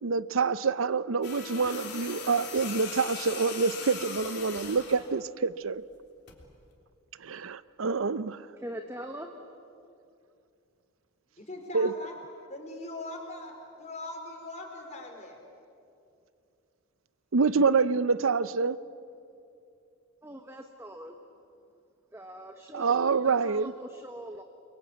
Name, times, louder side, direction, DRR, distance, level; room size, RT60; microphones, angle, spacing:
voice 1, 0.0-5.8 7.2-8.5 11.7-11.9 17.3-18.8 22.7-23.7, right 4 dB, 80° right, 16 dB, 0.7 m, -27 dB
sound 1, 1.2-5.1 6.3-6.5, left 6 dB, 55° left, 3.6 m, -40 dB
voice 2, 8.6-9.3 20.2-21.1 22.1-24.4, right 1 dB, 10° right, 4 dB, 1.1 m, -42 dB
voice 3, 11.4-12.1 12.5-13.5 13.8-15.4, left 2 dB, 35° left, 2 dB, 4.7 m, -41 dB
30.0 x 22.5 x 8.3 m, 2.5 s
head